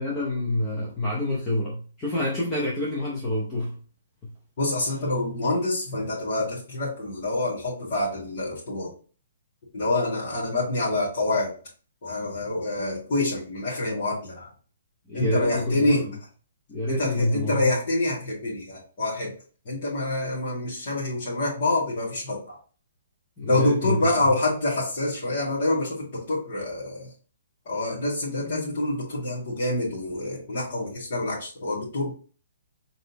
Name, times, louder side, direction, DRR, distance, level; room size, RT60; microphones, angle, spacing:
voice 1, 0.0-3.8 4.2-4.3 15.1-16.0 16.7-17.6 23.4-24.0, left 1 dB, 15° left, -5 dB, 0.8 m, -27 dB
voice 2, 4.6-8.9 9.7-11.5 12.0-14.5 15.1-16.0 16.9-19.3 19.6-22.6 23.5-27.1 27.6-32.1, left 2 dB, 40° left, -12 dB, 2.2 m, -26 dB
4.0 x 3.7 x 2.9 m, 0.40 s
hypercardioid pair, 170°, 0 cm